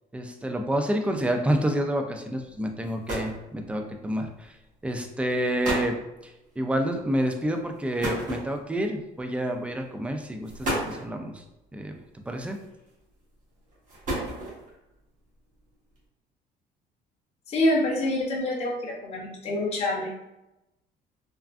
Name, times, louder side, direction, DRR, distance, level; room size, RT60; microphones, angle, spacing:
voice 1, 0.1-4.5 4.8-6.0 6.6-11.4 11.7-12.0 12.3-12.6, right 1 dB, 5° right, 4 dB, 0.3 m, -28 dB
sound 1, 2.5-2.6 2.8-3.5 4.4-4.7 5.3-5.4 5.6-6.0 8.0-8.9 9.8-9.9 10.4-11.1 12.4-12.9 13.7-14.7, right 1 dB, 50° right, 1.2 m, -31 dB
voice 2, 17.5-20.2, left 1 dB, 40° left, -3 dB, 0.7 m, -26 dB
3.4 x 2.4 x 2.4 m, 0.92 s
cardioid pair, 110°, 17 cm